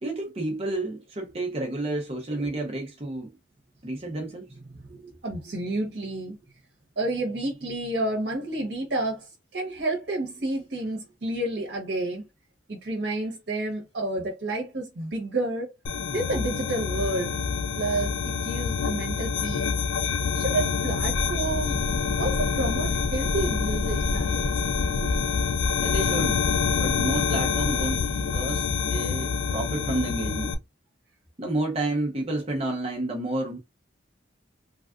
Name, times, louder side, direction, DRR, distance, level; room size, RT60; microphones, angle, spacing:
voice 1, 0.0-3.3 3.8-4.5 25.8-26.4 26.8-30.6 31.4-33.6, right 2 dB, 30° right, 0.7 m, -30 dB
voice 2, 4.7-6.4 7.0-12.2 12.7-15.7 16.1-17.4 17.7-19.7 20.3-21.8 22.2-24.5 25.0-25.1, right 2 dB, 60° right, 1.0 m, -30 dB
sound 1, 15.9-30.5, left 6 dB, 80° left, 0.4 m, -27 dB
Thunder, 21.0-28.9, equal, 30° left, 0.9 m, -34 dB
3.3 x 2.4 x 2.4 m
head